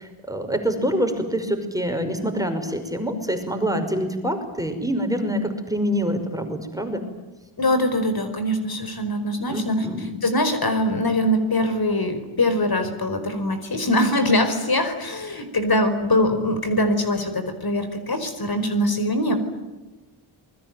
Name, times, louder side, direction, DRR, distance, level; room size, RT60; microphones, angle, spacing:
voice 1, 0.0-7.0 9.5-10.1, equal, 5° right, 6 dB, 5.6 m, -26 dB
voice 2, 7.6-19.4, left 1 dB, 45° left, 8 dB, 5.0 m, -23 dB
28.0 x 22.0 x 9.3 m, 1.2 s
wide cardioid pair, 90°, 50 cm